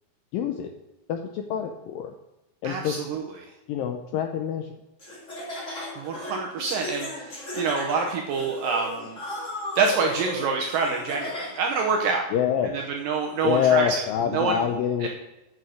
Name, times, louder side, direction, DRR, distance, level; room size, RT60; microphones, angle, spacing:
voice 1, 0.3-0.7 1.1-2.1 2.6-2.9 3.7-4.7 12.3-12.7 13.4-15.1, left 9 dB, 85° left, 5 dB, 2.0 m, -25 dB
voice 2, 2.6-3.2 6.0-9.2 9.8-12.3 12.6-13.8 14.3-14.6 15.0-15.1, right 5 dB, 75° right, 1 dB, 2.1 m, -26 dB
Laughter, 5.0-11.8, left 1 dB, 30° left, 1.5 m, -36 dB
8.8 x 6.5 x 6.2 m, 0.98 s
omnidirectional pair, 4.7 m